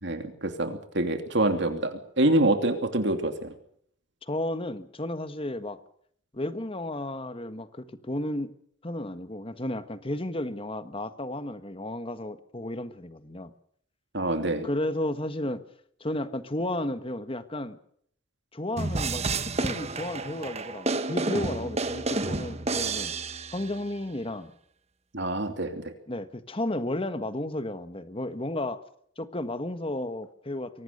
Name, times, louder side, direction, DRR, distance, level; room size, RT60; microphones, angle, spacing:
voice 1, 0.0-3.5 14.1-14.7 25.1-25.9, right 1 dB, 60° right, 7 dB, 2.9 m, -26 dB
voice 2, 4.2-5.8 6.3-8.5 8.8-13.5 14.6-15.6 16.0-17.8 18.5-23.1 23.5-24.5 26.1-28.8 29.2-30.8, left 1 dB, 30° left, 11 dB, 1.5 m, -33 dB
sound 1, 18.8-23.8, right 3 dB, 35° right, 1.3 m, -30 dB
23.5 x 18.5 x 6.8 m, 0.65 s
head